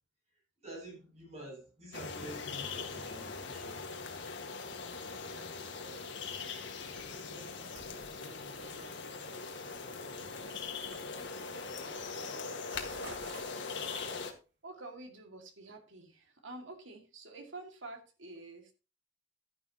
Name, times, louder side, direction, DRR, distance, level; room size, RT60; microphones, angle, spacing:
voice 1, 0.6-4.0, right 1 dB, 35° right, 6.8 m, -48 dB
sound 1, 1.9-14.3, left 4 dB, 65° left, 1.7 m, -41 dB
voice 2, 5.0-6.2 6.9-9.3 10.1-11.5 11.8-12.7 14.6-18.7, right 2 dB, 75° right, 2.2 m, -51 dB
sound 2, 6.2-6.5 6.8-9.3 9.7-11.6 11.9-12.2 12.4-14.4, right 2 dB, 60° right, 2.6 m, -55 dB
11.5 x 10.5 x 2.9 m
head